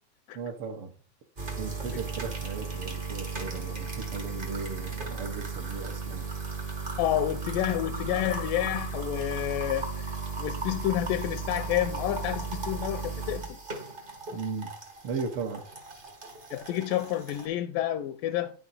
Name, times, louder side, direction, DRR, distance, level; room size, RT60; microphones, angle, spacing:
voice 1, 0.3-0.9 1.6-6.3 14.3-14.7 15.0-15.6, right 5 dB, 80° right, 1.2 m, -36 dB
sound 1, 1.4-17.5, right 4 dB, 50° right, 0.6 m, -36 dB
voice 2, 7.0-13.6 16.5-18.5, left 13 dB, 80° left, 2.1 m, -29 dB
10.0 x 6.0 x 4.1 m
omnidirectional pair, 4.1 m